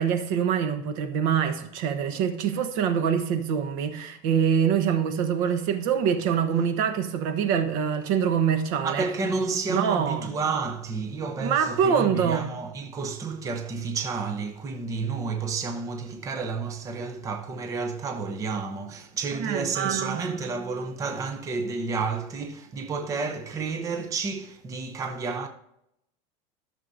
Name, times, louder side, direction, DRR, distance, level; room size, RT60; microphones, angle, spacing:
voice 1, 0.0-9.0 9.7-10.3 11.4-12.5 19.4-20.2, right 7 dB, 60° right, 1.2 m, -25 dB
voice 2, 8.8-25.5, right 4 dB, 15° right, 0.7 m, -31 dB
14.0 x 6.7 x 2.7 m
supercardioid pair, 160°, 19 cm